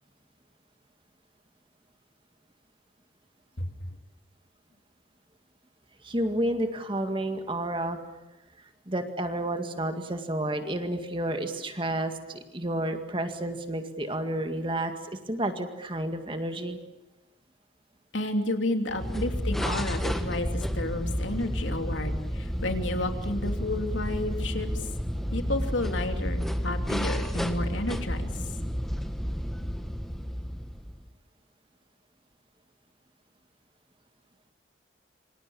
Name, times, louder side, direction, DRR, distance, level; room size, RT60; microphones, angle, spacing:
voice 1, 6.0-8.0 8.9-14.9 15.3-16.8 19.0-19.2 24.4-24.7, right 1 dB, 25° right, 6 dB, 2.1 m, -31 dB
voice 2, 18.1-24.7 25.3-28.3, left 2 dB, 80° left, 5 dB, 3.0 m, -31 dB
sound 1, 18.9-31.1, equal, ahead, 1.4 m, -31 dB
27.5 x 25.5 x 7.2 m, 1.0 s
head